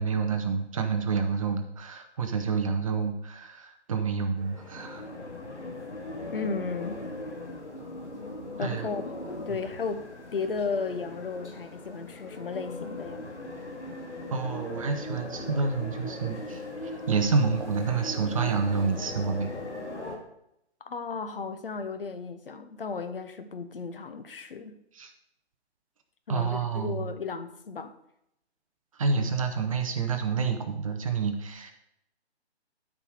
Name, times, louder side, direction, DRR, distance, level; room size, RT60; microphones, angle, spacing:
voice 1, 0.0-5.1 8.6-8.9 14.3-19.5 24.9-25.1 26.3-27.1 29.0-31.7, right 5 dB, 30° right, 6 dB, 0.9 m, -28 dB
sound 1, 4.4-20.2, left 2 dB, 85° left, 2.2 m, -39 dB
voice 2, 6.3-7.0 8.6-9.0 9.5-13.3 20.8-24.8 26.3-27.9, left 5 dB, 55° left, 9 dB, 1.0 m, -34 dB
12.5 x 5.0 x 4.9 m, 0.78 s
figure-of-eight pair, 140°, 34 cm